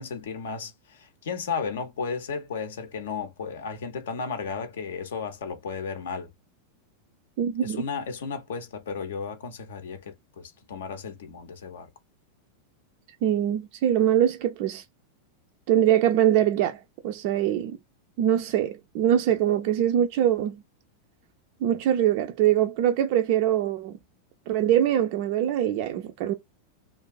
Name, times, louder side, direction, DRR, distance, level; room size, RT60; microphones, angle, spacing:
voice 1, 0.0-6.3 7.6-11.9, left 5 dB, 60° left, 0.5 m, -34 dB
voice 2, 7.4-7.8 13.2-14.8 15.7-17.8 18.2-20.6 21.6-24.0 24.5-26.3, right 11 dB, 45° right, 0.3 m, -23 dB
2.4 x 2.3 x 2.2 m
figure-of-eight pair, 90°, 0 cm